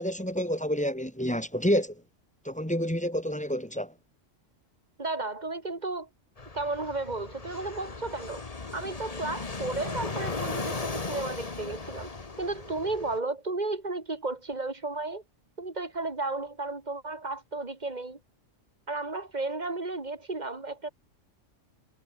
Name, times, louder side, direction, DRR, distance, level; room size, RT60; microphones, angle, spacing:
voice 1, 0.0-2.0 2.4-3.9, equal, 5° left, 2.9 m, -28 dB
voice 2, 5.0-6.1 6.5-8.4 8.7-12.1 12.4-15.2 15.6-18.2 18.9-20.9, right 3 dB, 35° right, 2.6 m, -33 dB
Fixed-wing aircraft airplane, 6.4-13.2, left 3 dB, 30° left, 1.5 m, -37 dB
omnidirectional pair, 1.3 m